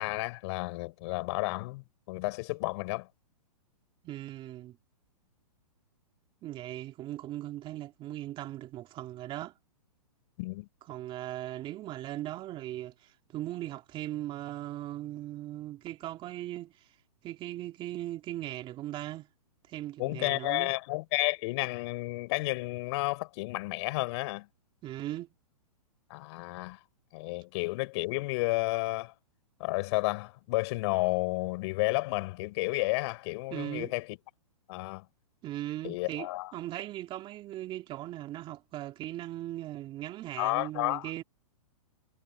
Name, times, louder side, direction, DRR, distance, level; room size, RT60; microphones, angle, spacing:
voice 1, 0.0-3.1 10.4-10.7 20.0-24.5 26.1-26.8 27.1-29.1 29.6-34.2 34.7-35.1 35.8-36.5 40.4-41.1, left 23 dB, 45° left, 5.2 m, -31 dB
voice 2, 4.0-4.8 6.4-9.5 10.9-16.9 17.2-19.3 19.7-20.7 24.8-25.3 33.5-33.9 35.4-41.2, right 14 dB, 25° right, 2.4 m, -39 dB
hypercardioid pair, 135°, 20 cm